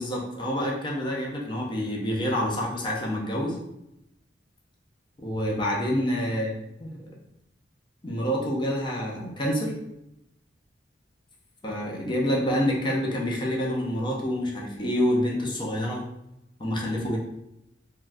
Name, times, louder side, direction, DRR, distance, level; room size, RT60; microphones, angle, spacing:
voice 1, 0.0-3.5 5.2-6.5 6.8-7.0 8.0-9.7 11.6-16.0 16.6-17.2, equal, 25° left, -2 dB, 0.5 m, -27 dB
3.5 x 2.2 x 2.5 m, 0.85 s
head